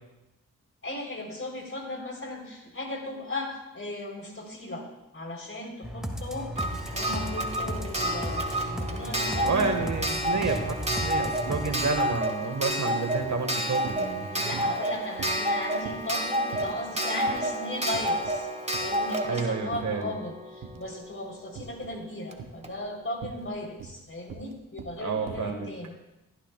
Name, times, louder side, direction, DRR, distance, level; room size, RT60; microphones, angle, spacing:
voice 1, 0.8-4.8 5.1-6.5 6.9-9.7 14.3-18.5 18.8-25.9, left 1 dB, 40° left, 1 dB, 3.6 m, -36 dB
sound 1, 5.8-11.9, equal, ahead, 2.0 m, -35 dB
Clock, 6.6-21.1 22.3-22.4 22.6-22.7, right 1 dB, 20° right, 1.7 m, -30 dB
sound 2, 8.9-9.0 9.3-10.0 10.4-11.2 11.5-11.8 12.1-14.9 15.2-16.1 16.5-16.9 17.3-17.5 17.9-18.4 18.7-20.1 20.6-21.0 21.6-22.0 22.3-25.6, right 5 dB, 75° right, 1.0 m, -44 dB
voice 2, 9.4-14.6 19.2-20.1 25.0-25.7, right 4 dB, 55° right, 5 dB, 1.6 m, -30 dB
16.0 x 13.0 x 2.3 m, 0.94 s
supercardioid pair, 40°, 33 cm